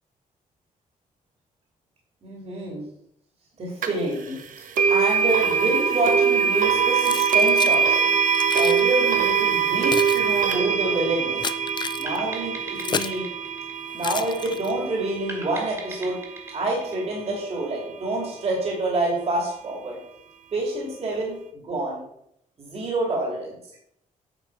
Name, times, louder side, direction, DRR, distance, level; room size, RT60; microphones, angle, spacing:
voice 1, 2.2-2.8 3.6-4.4 4.9-8.1 8.5-11.4 12.0-13.2 13.9-16.2 16.5-20.0 20.5-22.0 22.6-23.5, right 2 dB, 45° right, -2 dB, 2.7 m, -27 dB
sound 1, 3.8-3.9 4.8-15.7, right 6 dB, 70° right, 0.9 m, -22 dB
Keys jangling, 7.0-7.8 8.3-8.8 9.5-13.2 14.0-14.9, left 6 dB, 30° left, 0.4 m, -32 dB
sound 2, 12.1-14.6 15.3-17.8, right 1 dB, 20° right, 2.2 m, -40 dB
9.2 x 5.5 x 4.7 m, 0.74 s
cardioid pair, 125°, 14 cm